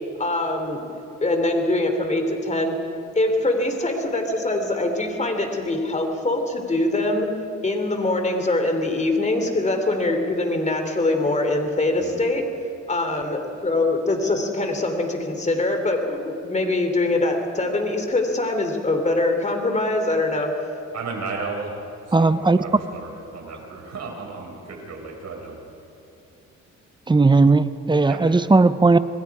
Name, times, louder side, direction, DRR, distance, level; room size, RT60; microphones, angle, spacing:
voice 1, 0.2-0.8 1.2-2.8 3.1-7.3 7.6-12.5 12.9-20.5, left 2 dB, 25° left, 5 dB, 3.3 m, -23 dB
voice 2, 20.9-21.7 22.1-25.6 28.1-28.2, right 4 dB, 60° right, 0 dB, 6.0 m, -34 dB
voice 3, 22.1-22.6 27.1-29.0, right 3 dB, 15° right, 13 dB, 0.8 m, -16 dB
27.5 x 20.5 x 4.9 m, 2.9 s
cardioid pair, 90°, 30 cm